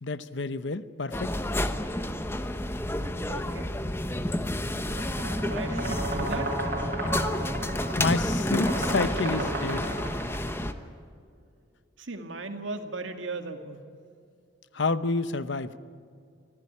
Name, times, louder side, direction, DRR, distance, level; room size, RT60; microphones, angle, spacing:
voice 1, 0.0-1.3 8.0-9.9 14.7-15.7, left 3 dB, 70° left, 14 dB, 0.9 m, -29 dB
sound 1, 1.1-10.7, left 1 dB, 15° left, 0.9 m, -30 dB
voice 2, 3.3-3.8 5.4-6.6 12.0-13.8, right 2 dB, 85° right, 6 dB, 2.0 m, -37 dB
sound 2, 4.8-10.5, right 1 dB, 50° right, 7.0 m, -34 dB
25.0 x 15.5 x 9.8 m, 2.3 s
head